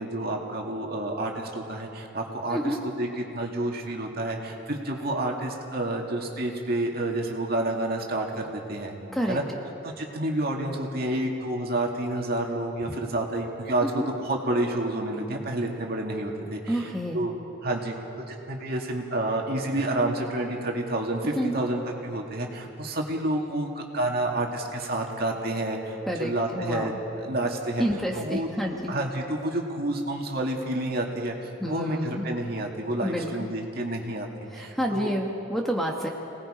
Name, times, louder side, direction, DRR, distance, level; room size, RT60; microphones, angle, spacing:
voice 1, 0.0-8.9 9.3-9.4 9.8-17.3 17.6-17.9 18.3-27.8 28.1-28.5 28.9-31.4 31.6-34.3 34.5-35.1, right 1 dB, 45° right, 0 dB, 2.3 m, -29 dB
voice 2, 16.7-17.3 21.4-21.5 26.1-26.9 27.8-28.9 31.6-32.2 33.0-33.3 34.5-36.1, equal, ahead, 0 dB, 1.2 m, -29 dB
27.0 x 19.0 x 5.1 m, 2.9 s
head